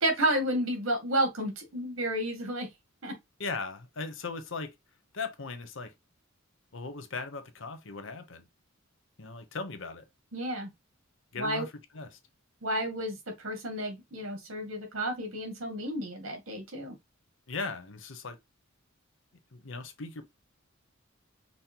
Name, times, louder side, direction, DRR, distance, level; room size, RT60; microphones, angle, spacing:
voice 1, 0.0-2.7 3.0-3.1 10.3-10.7 11.4-11.7 12.6-16.9, right 1 dB, 80° right, 2.1 m, -31 dB
voice 2, 3.4-4.7 5.1-5.9 6.7-8.5 9.2-10.0 11.3-11.7 11.9-12.1 17.5-18.4 19.5-20.2, left 4 dB, 65° left, 0.9 m, -38 dB
5.5 x 2.1 x 4.5 m
head